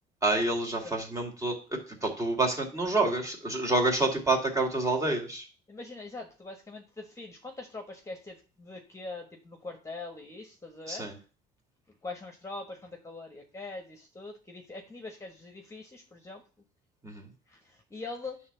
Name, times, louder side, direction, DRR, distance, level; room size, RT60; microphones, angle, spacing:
voice 1, 0.2-5.4 10.9-11.1 17.0-17.3, right 2 dB, 20° right, 0 dB, 2.5 m, -28 dB
voice 2, 5.7-11.1 12.0-16.4 17.5-18.4, left 3 dB, 15° left, 3 dB, 1.4 m, -42 dB
9.4 x 3.6 x 6.9 m, 0.36 s
cardioid pair, 110°, 17 cm